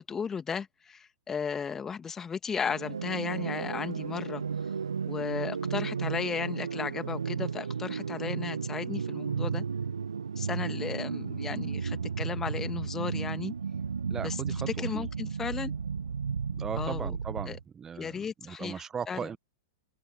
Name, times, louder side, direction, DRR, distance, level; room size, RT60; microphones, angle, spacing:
voice 1, 0.0-4.4 5.0-9.7 10.3-13.5 14.2-14.4 14.8-15.7 16.7-17.1 17.5-17.6 18.0-19.3, left 6 dB, 15° left, 2.1 m, -35 dB
sound 1, 2.7-17.6, right 6 dB, 75° right, 1.1 m, -33 dB
voice 2, 14.1-14.7 14.9-15.1 16.5-19.4, right 7 dB, 20° right, 1.0 m, -38 dB
figure-of-eight pair, 100°, 2 cm